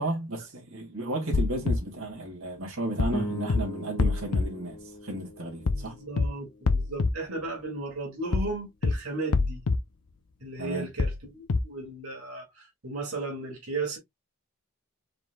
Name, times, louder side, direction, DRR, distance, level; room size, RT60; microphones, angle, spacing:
voice 1, 0.0-6.0 10.6-10.9, right 1 dB, 65° right, 2.3 m, -33 dB
sound 1, 1.3-1.8 3.0-3.2 3.5-3.6 4.0-4.4 5.7-5.9 6.2-6.3 6.7-7.1 8.3-8.5 8.8-8.9 9.3-9.8 11.0-11.2 11.5-11.6, left 4 dB, 80° left, 0.6 m, -25 dB
sound 2, 3.1-7.6, equal, 20° left, 1.6 m, -40 dB
voice 2, 5.7-9.6 10.4-14.0, right 3 dB, 80° right, 2.3 m, -35 dB
5.0 x 4.3 x 2.3 m
head